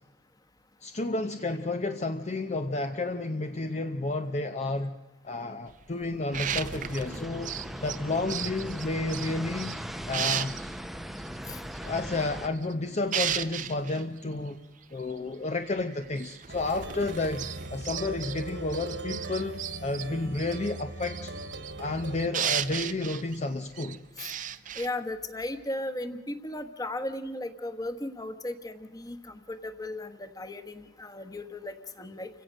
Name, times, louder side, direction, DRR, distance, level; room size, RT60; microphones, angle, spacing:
voice 1, 0.8-5.0 5.2-7.5 7.8-9.8 10.1-10.5 11.8-14.6 14.9-21.3 21.8-24.0, left 2 dB, 40° left, 7 dB, 0.7 m, -31 dB
sound 1, 5.7-9.8 10.1-10.7 11.1-11.3 11.7-12.7 13.0-14.0 14.8-14.9 15.1-15.2 15.9-18.4 18.7-24.9, right 9 dB, 45° right, 0.7 m, -35 dB
sound 2, 6.3-12.5, equal, ahead, 0.7 m, -39 dB
Plucked string instrument, 16.5-22.3, right 2 dB, 90° right, 2.7 m, -40 dB
voice 2, 24.8-32.3, left 1 dB, 20° left, 10 dB, 1.3 m, -36 dB
29.0 x 16.5 x 6.4 m, 1.2 s
head